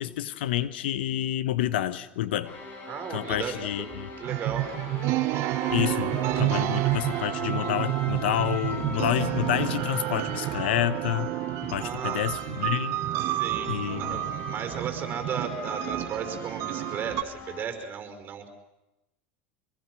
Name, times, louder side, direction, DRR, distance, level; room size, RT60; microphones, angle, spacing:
voice 1, 0.0-2.5 3.1-4.1 5.7-11.3 11.7-13.0 13.7-14.3, left 12 dB, 90° left, 16 dB, 1.2 m, -29 dB
sound 1, 2.4-17.7, left 2 dB, 40° left, 6.7 m, -40 dB
voice 2, 2.9-4.7 11.8-12.2 13.2-18.5, right 7 dB, 35° right, 6 dB, 5.2 m, -35 dB
sound 2, 4.2-17.2, right 17 dB, 55° right, 0.7 m, -30 dB
25.0 x 22.5 x 6.2 m, 0.96 s
supercardioid pair, 115°, 6 cm